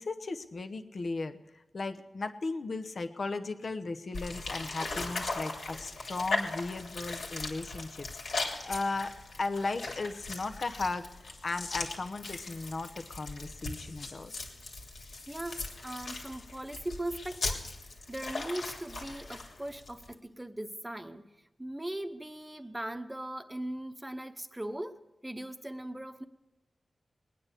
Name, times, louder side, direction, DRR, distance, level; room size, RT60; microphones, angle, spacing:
voice 1, 0.0-14.3, left 3 dB, 55° left, 8 dB, 0.9 m, -36 dB
sound 1, 4.1-20.1, left 3 dB, 80° left, 2.9 m, -39 dB
voice 2, 15.3-21.2 21.6-25.0 25.2-26.3, right 1 dB, 15° right, 9 dB, 1.0 m, -39 dB
20.5 x 9.6 x 6.7 m, 1.0 s
wide cardioid pair, 75°, 0 cm